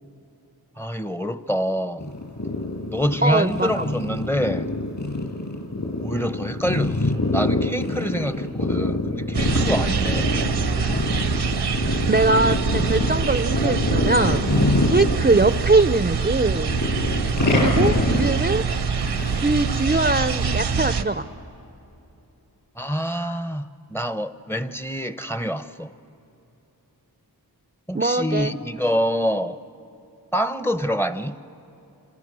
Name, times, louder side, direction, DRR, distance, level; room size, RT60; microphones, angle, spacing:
voice 1, 0.8-2.1 2.9-4.7 6.0-10.3 22.8-23.6 23.9-25.9 27.9-29.6 30.3-31.4, equal, 5° left, 11 dB, 0.8 m, -26 dB
sound 1, 2.0-15.8 16.1-20.0, left 2 dB, 50° left, 5.4 m, -25 dB
voice 2, 3.2-3.8 12.1-14.4 14.9-16.8 17.5-18.6 19.3-21.3 27.9-28.5, right 3 dB, 25° right, 11 dB, 0.6 m, -21 dB
sound 2, 9.3-21.0, right 5 dB, 85° right, 1.1 m, -25 dB
28.5 x 27.0 x 6.3 m, 2.9 s
cardioid pair, 45°, 40 cm